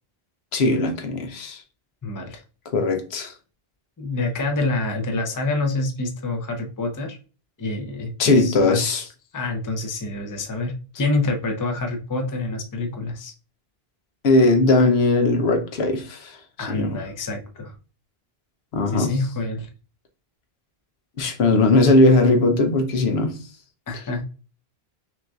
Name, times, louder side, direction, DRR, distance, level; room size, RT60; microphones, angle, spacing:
voice 1, 0.5-1.6 2.7-3.3 8.2-9.0 14.2-16.4 16.7-17.0 18.7-19.1 21.2-23.4, left 2 dB, 85° left, 1.0 m, -19 dB
voice 2, 2.0-2.4 4.0-7.2 7.6-8.8 9.3-13.3 16.6-17.8 18.9-19.7 23.9-24.2, left 2 dB, 25° left, 0.5 m, -27 dB
5.9 x 2.6 x 2.3 m
omnidirectional pair, 1.0 m